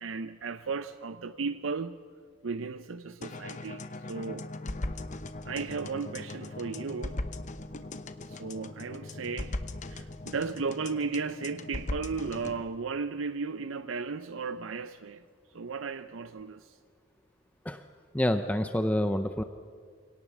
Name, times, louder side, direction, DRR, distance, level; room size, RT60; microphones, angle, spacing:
voice 1, 0.0-2.0 2.4-4.5 5.4-7.2 8.3-9.5 9.9-15.2 15.5-16.8, right 4 dB, 75° right, 0.6 m, -35 dB
sound 1, 3.2-12.6, left 2 dB, 35° left, 0.9 m, -39 dB
voice 2, 18.1-19.4, left 1 dB, 5° left, 0.6 m, -27 dB
24.5 x 18.0 x 7.2 m
head